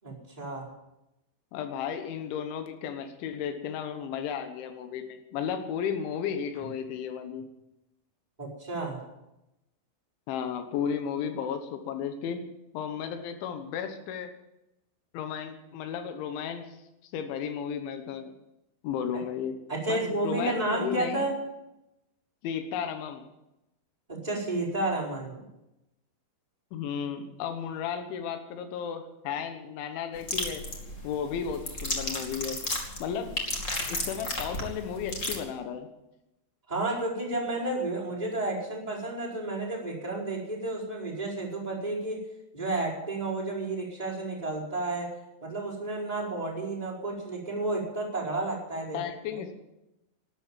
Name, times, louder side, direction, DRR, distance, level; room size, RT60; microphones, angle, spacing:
voice 1, 0.0-0.7 8.4-9.0 19.1-19.2 19.7-21.3 24.1-25.5 36.7-42.3 42.5-45.1 45.4-49.0 49.3-49.4, right 2 dB, 10° right, -6 dB, 4.4 m, -31 dB
voice 2, 1.5-7.4 10.3-12.4 12.7-14.3 15.1-16.8 17.0-18.3 18.8-19.6 19.9-21.3 22.4-23.3 26.7-30.7 31.0-32.6 33.0-33.3 33.9-35.9 48.9-49.5, left 7 dB, 90° left, 7 dB, 3.6 m, -34 dB
sound 1, 30.1-35.3, left 1 dB, 25° left, 1.7 m, -33 dB
12.5 x 11.5 x 9.1 m, 0.92 s
omnidirectional pair, 5.2 m